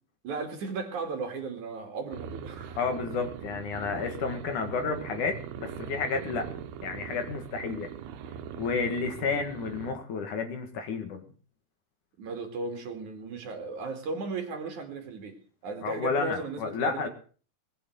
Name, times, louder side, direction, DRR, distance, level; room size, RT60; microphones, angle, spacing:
voice 1, 0.2-2.8 12.2-17.1, right 4 dB, 55° right, 3.5 m, -36 dB
sound 1, 2.1-9.9, right 8 dB, 85° right, 3.0 m, -41 dB
voice 2, 2.8-6.5 6.8-7.9 8.6-11.2 15.8-17.1, left 5 dB, 60° left, 3.1 m, -31 dB
20.0 x 8.3 x 7.8 m
omnidirectional pair, 4.4 m